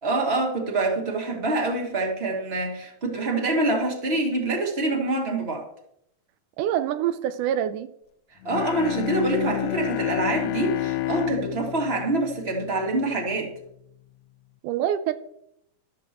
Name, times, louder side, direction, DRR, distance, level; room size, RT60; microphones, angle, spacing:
voice 1, 0.0-5.7 8.4-13.5, right 2 dB, 20° right, 2.1 m, -26 dB
voice 2, 6.6-7.9 14.6-15.1, right 10 dB, 85° right, 2.2 m, -25 dB
Bowed string instrument, 8.4-13.3, left 15 dB, 80° left, 1.7 m, -30 dB
13.5 x 12.5 x 3.0 m
omnidirectional pair, 3.5 m